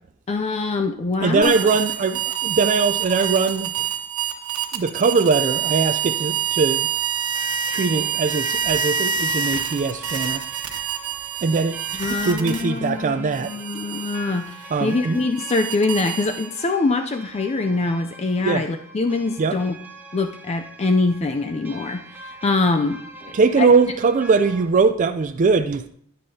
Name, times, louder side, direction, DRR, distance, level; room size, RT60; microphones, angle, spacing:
voice 1, 0.3-1.7 12.0-19.8 20.1-23.7, left 3 dB, 30° left, 0.4 m, -24 dB
voice 2, 1.2-3.7 4.7-6.9 7.7-10.4 11.4-11.8 12.1-13.5 14.7-15.2 18.4-18.6 19.4-19.6 23.3-25.9, right 4 dB, 35° right, 0.3 m, -21 dB
sound 1, 1.4-12.9 13.3-16.7, right 8 dB, 80° right, 1.2 m, -27 dB
sound 2, 7.3-24.7, right 2 dB, 10° right, 0.7 m, -43 dB
10.5 x 9.8 x 2.8 m
head